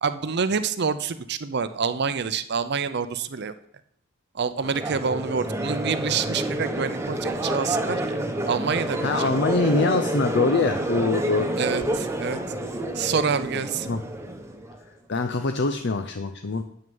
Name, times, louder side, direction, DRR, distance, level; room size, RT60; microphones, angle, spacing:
voice 1, 0.0-3.5 4.3-8.2 8.5-9.4 11.6-12.4 12.9-13.9, right 5 dB, 55° right, 13 dB, 0.6 m, -27 dB
Crowd, 4.6-14.8, right 1 dB, 15° right, 1.0 m, -29 dB
voice 2, 9.0-11.5 13.9-14.0 15.1-16.6, left 3 dB, 55° left, 7 dB, 0.6 m, -24 dB
9.0 x 6.5 x 7.0 m, 0.68 s
head